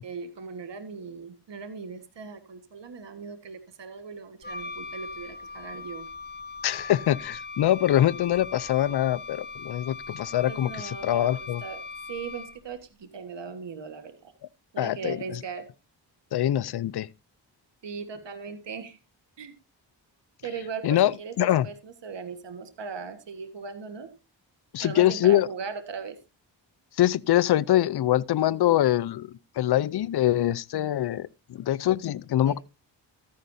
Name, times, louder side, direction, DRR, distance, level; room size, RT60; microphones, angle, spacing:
voice 1, 0.0-6.0 10.5-11.3 11.6-11.8 12.1-14.3 14.7-15.7 17.8-19.0 19.4-19.5 20.4-24.1 24.8-26.2 32.4-32.6, right 5 dB, 70° right, 1.6 m, -38 dB
Wind instrument woodwind instrument, 4.4-12.7, left 3 dB, 20° left, 1.4 m, -40 dB
voice 2, 6.6-11.6 14.8-15.4 16.3-17.1 20.8-21.7 24.7-25.5 27.0-29.3 29.6-32.6, left 12 dB, 60° left, 0.6 m, -24 dB
13.5 x 10.5 x 2.7 m
cardioid pair, 55°, 45 cm